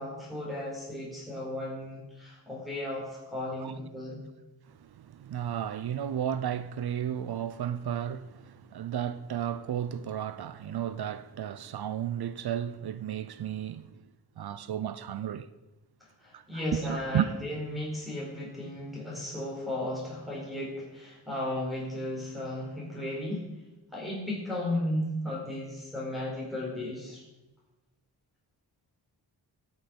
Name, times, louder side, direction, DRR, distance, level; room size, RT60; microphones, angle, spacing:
voice 1, 0.0-4.2 16.2-23.5 23.9-27.2, left 1 dB, ahead, 4.5 m, -35 dB
voice 2, 4.7-14.0 14.4-15.5 16.3-17.3, right 10 dB, 70° right, 0.6 m, -33 dB
17.5 x 6.6 x 5.3 m
wide cardioid pair, 110°, 40 cm